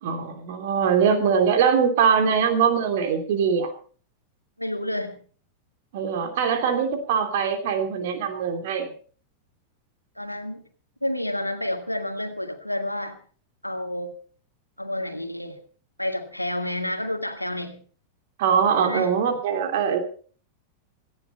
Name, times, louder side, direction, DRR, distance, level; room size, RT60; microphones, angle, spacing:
voice 1, 0.0-3.7 5.9-8.9 18.4-20.0, right 7 dB, 55° right, 7 dB, 2.8 m, -22 dB
voice 2, 4.6-5.2 10.2-10.6 11.0-13.2 13.6-14.2 14.8-15.6 16.0-17.8 18.8-19.1, left 1 dB, 90° left, 7 dB, 1.8 m, -29 dB
18.0 x 14.5 x 4.1 m, 0.42 s
figure-of-eight pair, 90°, 0 cm